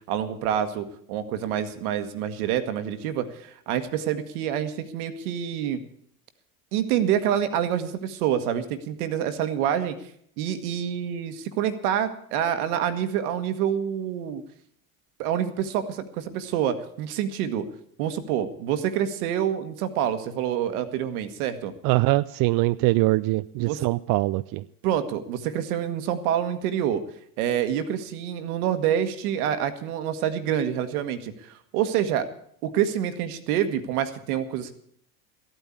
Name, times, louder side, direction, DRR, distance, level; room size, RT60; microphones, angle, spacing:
voice 1, 0.1-5.8 6.7-10.0 10.4-14.4 15.2-17.7 18.0-21.7 23.6-23.9 24.8-27.0 27.4-32.2 32.6-34.7, right 9 dB, 70° right, 10 dB, 1.6 m, -27 dB
voice 2, 21.8-24.6, right 20 dB, 50° right, 13 dB, 0.5 m, -23 dB
14.0 x 9.0 x 8.4 m, 0.66 s
hypercardioid pair, 85°, 45 cm